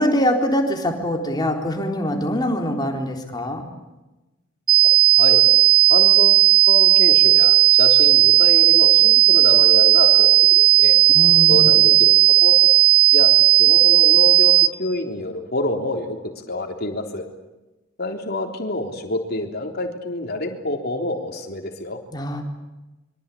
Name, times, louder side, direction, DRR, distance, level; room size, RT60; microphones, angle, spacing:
voice 1, 0.0-3.6 11.1-11.7 22.1-22.4, equal, 20° left, 2 dB, 4.0 m, -23 dB
sound 1, 4.7-14.7, right 14 dB, 25° right, 1.9 m, -14 dB
voice 2, 5.9-11.0 11.5-12.5 13.1-13.3 13.6-16.2 16.5-17.3 18.0-22.0, left 2 dB, 50° left, 3 dB, 3.6 m, -27 dB
25.5 x 24.0 x 8.6 m, 1.1 s
head